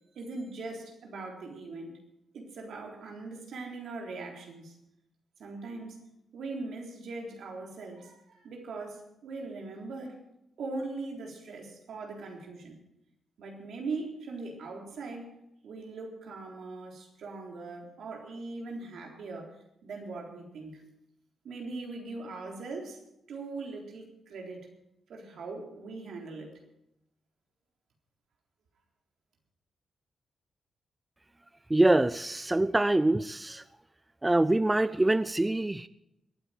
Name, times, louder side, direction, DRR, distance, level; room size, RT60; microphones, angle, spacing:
voice 1, 0.2-2.0 2.3-4.8 5.4-6.0 6.3-10.2 10.6-12.8 13.4-15.4 15.6-19.6 19.8-20.9 21.4-23.0 23.3-24.6 25.1-26.6, right 3 dB, 80° right, 1 dB, 3.7 m, -40 dB
voice 2, 31.7-33.6 34.2-35.9, right 2 dB, 15° right, 15 dB, 0.4 m, -25 dB
22.0 x 9.5 x 5.1 m, 0.81 s
cardioid pair, 85°, 0 cm